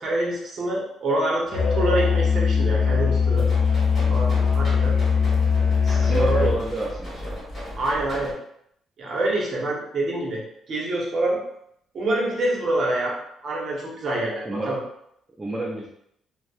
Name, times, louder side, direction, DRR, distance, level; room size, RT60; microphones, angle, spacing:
voice 1, 0.0-3.5 4.1-5.0 5.9-6.5 7.7-8.3 9.0-10.4 10.7-11.4 11.9-13.2 13.4-14.8, right 2 dB, 45° right, -3 dB, 0.8 m, -26 dB
Musical instrument, 1.5-6.7, left 6 dB, 65° left, 0.4 m, -21 dB
sound 1, 3.3-8.3, left 1 dB, 25° left, 1.3 m, -36 dB
voice 2, 5.8-7.4 14.4-14.8 15.4-15.9, right 2 dB, 15° right, -3 dB, 0.3 m, -30 dB
2.6 x 2.0 x 2.3 m, 0.74 s
cardioid pair, 140°, 0 cm